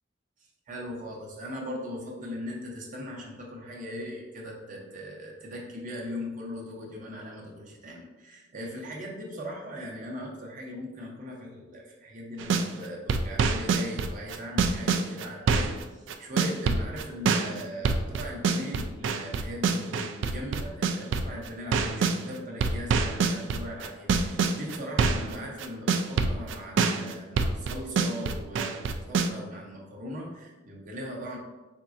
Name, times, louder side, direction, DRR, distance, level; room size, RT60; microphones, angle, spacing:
voice 1, 0.7-31.4, equal, 45° right, -2 dB, 0.7 m, -39 dB
sound 1, 12.4-12.7 13.1-22.2 22.6-25.3 25.6-29.3, right 4 dB, 70° right, 0.3 m, -25 dB
4.1 x 3.6 x 2.5 m, 1.2 s
head